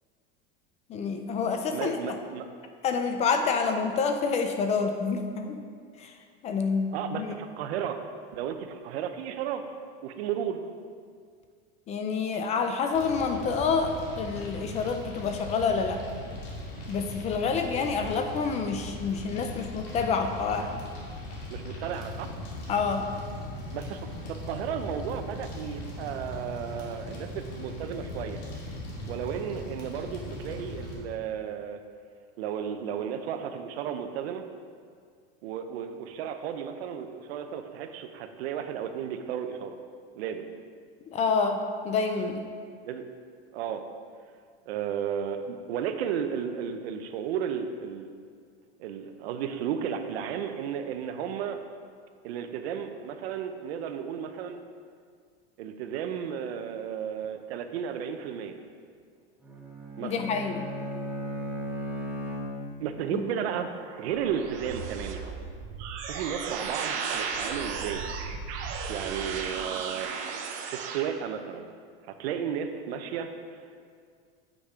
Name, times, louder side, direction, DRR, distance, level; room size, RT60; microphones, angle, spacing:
voice 1, 0.9-2.1 2.8-5.6 6.0-6.1 6.4-7.4 11.9-16.0 16.9-20.8 22.7-23.1 41.1-42.4 60.0-60.6 63.1-63.2, left 5 dB, 20° left, 6 dB, 0.4 m, -28 dB
voice 2, 1.7-2.4 6.9-8.0 8.3-9.6 10.0-10.6 21.5-22.3 23.7-24.0 24.3-28.4 29.1-31.8 32.4-34.4 35.4-39.8 40.2-40.5 42.8-43.1 43.5-43.8 44.7-48.1 48.8-51.6 52.2-54.6 55.6-58.6 60.0-60.3 62.8-63.7 64.0-65.2 66.1-68.0 68.9-70.1 70.7-71.7 72.1-73.3, right 8 dB, 85° right, 7 dB, 0.8 m, -33 dB
Fire, 12.9-30.9, left 1 dB, 50° left, 2.2 m, -39 dB
Bowed string instrument, 59.4-63.1, equal, 5° right, 0.8 m, -36 dB
sound 1, 63.3-71.0, right 6 dB, 50° right, 0.9 m, -35 dB
8.3 x 6.2 x 5.0 m, 2.1 s
supercardioid pair, 160°, 30 cm